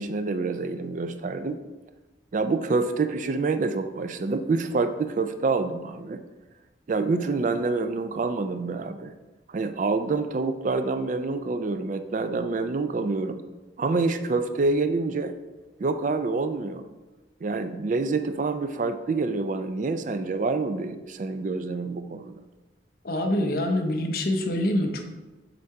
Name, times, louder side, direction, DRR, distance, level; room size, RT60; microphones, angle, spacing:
voice 1, 0.0-1.6 2.3-6.2 6.9-9.1 9.5-13.4 13.8-15.3 15.8-16.9 17.4-22.4, right 3 dB, 40° right, 10 dB, 0.3 m, -27 dB
voice 2, 23.0-25.0, left 1 dB, 50° left, 4 dB, 0.7 m, -25 dB
6.9 x 3.7 x 4.7 m, 1.2 s
head